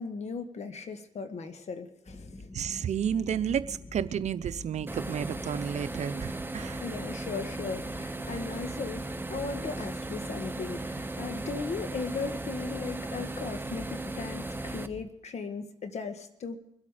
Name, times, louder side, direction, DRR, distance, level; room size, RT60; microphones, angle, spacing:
voice 1, 0.0-2.5 6.8-16.6, left 4 dB, 65° left, 8 dB, 1.6 m, -37 dB
sound 1, 2.1-15.1, left 2 dB, 20° left, 1.0 m, -46 dB
voice 2, 2.5-6.8, right 8 dB, 70° right, 14 dB, 0.7 m, -31 dB
sound 2, 4.9-14.9, right 2 dB, 15° right, 0.9 m, -37 dB
23.0 x 8.3 x 5.1 m, 0.79 s
cardioid pair, 80°, 12 cm